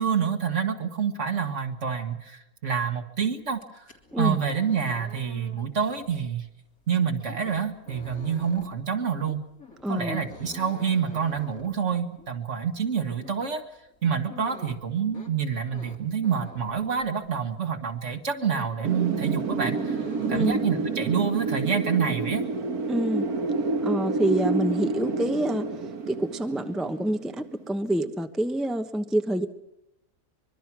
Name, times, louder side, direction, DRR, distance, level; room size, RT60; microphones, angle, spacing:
voice 1, 0.0-3.8 4.2-6.5 6.9-9.4 9.9-13.7 14.0-20.0 20.3-22.4, right 7 dB, 50° right, 7 dB, 2.0 m, -27 dB
sound 1, 3.5-17.6 17.9-18.9 19.1-20.6, left 3 dB, 70° left, 3.0 m, -47 dB
voice 2, 9.8-10.2 20.3-20.6 22.9-23.3 23.8-25.7 26.1-29.5, right 1 dB, ahead, 7 dB, 0.8 m, -27 dB
Wind, 18.8-27.6, right 4 dB, 80° right, 1.9 m, -29 dB
24.5 x 23.0 x 6.1 m, 0.86 s
omnidirectional pair, 1.6 m